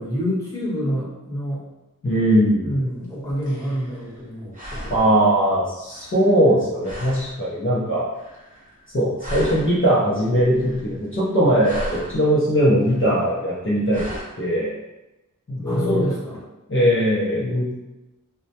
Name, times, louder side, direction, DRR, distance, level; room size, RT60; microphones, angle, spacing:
voice 1, 0.0-1.6 2.6-5.1 15.6-16.4, equal, 10° left, -8 dB, 1.0 m, -27 dB
voice 2, 2.0-2.7 4.9-8.1 8.9-14.0 14.4-14.7 15.5-16.1 16.7-17.7, equal, 40° left, -8 dB, 0.6 m, -20 dB
sound 1, 3.0-4.3 4.5-5.3 5.9-6.5 6.8-7.4 8.1-8.9 9.2-10.0 10.4-11.1 11.5-12.2 12.8-13.4 13.9-14.2, equal, 25° right, 0.8 m, -36 dB
2.1 x 2.1 x 2.7 m, 1.0 s
wide cardioid pair, 40°, 33 cm